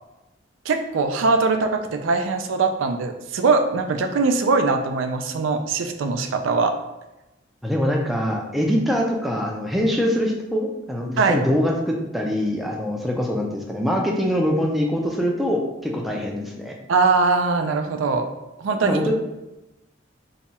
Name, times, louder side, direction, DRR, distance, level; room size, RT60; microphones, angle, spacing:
voice 1, 0.7-6.8 11.2-11.4 16.9-18.3 18.6-19.0, right 4 dB, 90° right, 6 dB, 0.4 m, -21 dB
voice 2, 7.6-16.7 18.8-19.1, equal, ahead, -1 dB, 0.4 m, -23 dB
2.8 x 2.2 x 4.1 m, 0.97 s
head